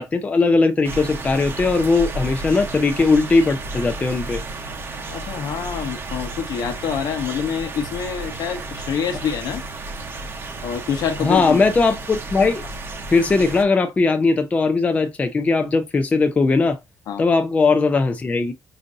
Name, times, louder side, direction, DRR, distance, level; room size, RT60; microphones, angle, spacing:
voice 1, 0.0-4.4 11.2-12.6 13.1-16.8 17.2-18.5, left 3 dB, 20° left, 0.4 m, -19 dB
sound 1, 0.8-13.6, right 2 dB, 35° right, 0.8 m, -32 dB
voice 2, 5.1-9.6 10.6-11.7 17.1-17.2, left 7 dB, 70° left, 0.9 m, -26 dB
4.9 x 2.6 x 2.5 m
cardioid pair, 150°, 7 cm